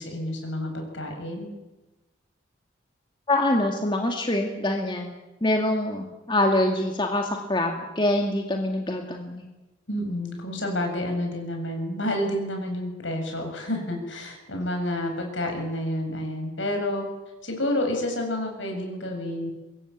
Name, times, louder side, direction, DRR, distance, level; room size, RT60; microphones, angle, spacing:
voice 1, 0.0-1.5 9.9-17.0 17.4-19.5, left 1 dB, 70° left, 3 dB, 7.5 m, -29 dB
voice 2, 3.3-5.1 5.4-9.5, left 1 dB, 25° left, 2 dB, 2.2 m, -25 dB
24.5 x 22.0 x 8.7 m, 1.1 s
head